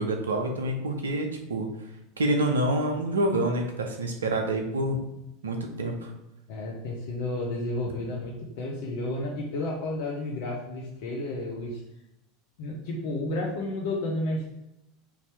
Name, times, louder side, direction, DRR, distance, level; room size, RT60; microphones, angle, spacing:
voice 1, 0.0-1.7 2.2-5.0 5.4-6.1, right 1 dB, 85° right, 4 dB, 0.7 m, -27 dB
voice 2, 6.5-11.8 12.6-14.5, left 2 dB, 65° left, -2 dB, 0.8 m, -31 dB
4.8 x 2.8 x 3.4 m, 0.87 s
hypercardioid pair, 85°, 0 cm